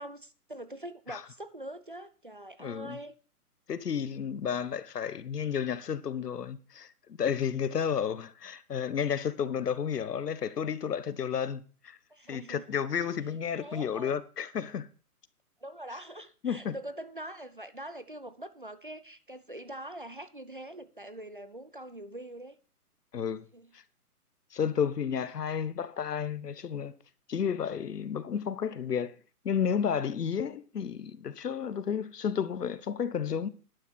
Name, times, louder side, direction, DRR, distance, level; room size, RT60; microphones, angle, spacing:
voice 1, 0.0-3.1 12.1-12.8 13.5-14.2 15.6-22.6 23.5-23.7, right 1 dB, 35° right, 0.5 m, -43 dB
voice 2, 2.6-3.0 3.7-12.0 12.3-14.9 16.4-16.7 23.1-23.4 24.5-26.9 27.3-29.1 29.4-33.5, left 7 dB, 85° left, 1.2 m, -32 dB
10.5 x 10.0 x 4.3 m
hypercardioid pair, 175°, 46 cm